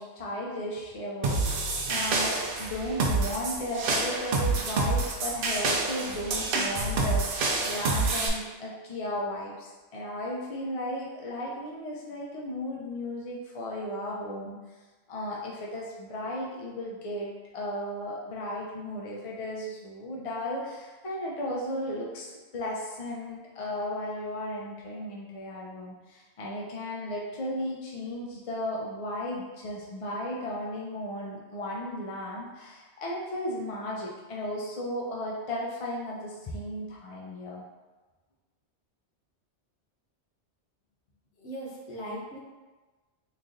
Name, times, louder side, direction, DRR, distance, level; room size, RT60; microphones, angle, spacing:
voice 1, 0.0-1.4 1.9-14.6 15.1-37.6, left 1 dB, 45° left, -4 dB, 0.4 m, -35 dB
sound 1, 1.2-8.3, right 3 dB, 60° right, 0.7 m, -28 dB
voice 2, 41.4-42.4, right 1 dB, 75° left, -3 dB, 1.1 m, -38 dB
3.1 x 2.6 x 3.7 m, 1.2 s
omnidirectional pair, 1.2 m